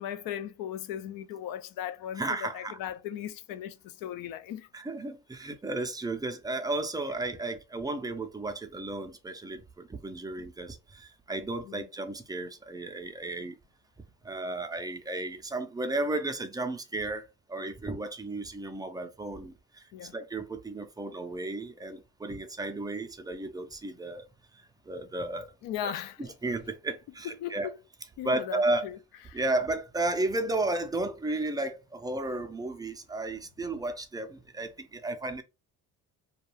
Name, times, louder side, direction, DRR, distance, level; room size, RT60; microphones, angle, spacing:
voice 1, 0.0-2.2 2.5-4.7 11.7-11.8 19.9-20.1 25.6-26.1 27.4-27.7 28.2-29.0 29.3-29.4, left 10 dB, 65° left, 0.5 m, -37 dB
voice 2, 2.1-2.8 4.7-13.6 14.2-24.2 24.9-25.5 25.8-25.9 26.2-27.7 28.2-28.9 29.3-35.4, right 2 dB, 10° right, 0.4 m, -33 dB
2.3 x 2.3 x 3.1 m
supercardioid pair, 80°, 38 cm